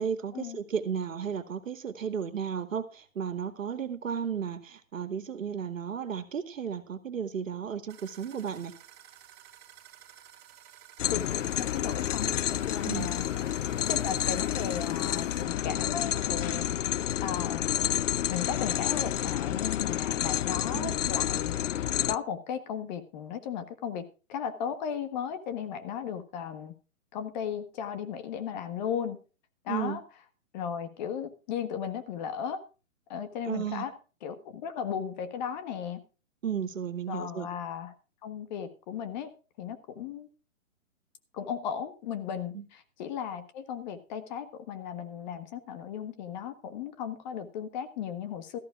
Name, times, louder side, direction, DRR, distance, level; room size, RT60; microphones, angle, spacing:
voice 1, 0.0-8.7 12.9-13.1 20.7-21.0 29.7-30.0 33.5-33.9 36.4-37.5 42.5-42.7, right 7 dB, 75° right, 11 dB, 2.0 m, -34 dB
sound 1, 7.9-15.4, right 11 dB, 25° right, 2.9 m, -53 dB
sound 2, 11.0-22.2, left 11 dB, 65° left, 0.5 m, -29 dB
voice 2, 11.1-12.3 12.7-13.3 13.9-17.7 18.3-21.8 22.0-26.7 27.1-29.2 29.6-30.0 30.5-32.6 33.1-33.9 34.2-36.0 37.1-37.9 38.2-39.3 39.6-40.3 41.3-48.6, left 8 dB, 35° left, 10 dB, 1.6 m, -36 dB
17.0 x 14.0 x 2.4 m, 0.33 s
hypercardioid pair, 140°, 40 cm